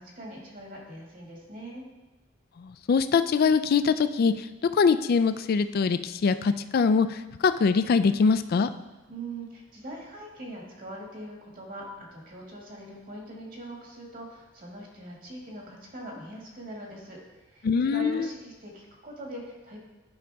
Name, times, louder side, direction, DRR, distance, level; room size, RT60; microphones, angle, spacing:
voice 1, 0.0-1.8 9.1-19.8, right 1 dB, 45° right, -2 dB, 1.9 m, -42 dB
voice 2, 2.6-4.5 4.7-8.7 17.6-18.3, left 5 dB, 50° left, 12 dB, 0.3 m, -23 dB
10.5 x 5.1 x 3.5 m, 1.1 s
head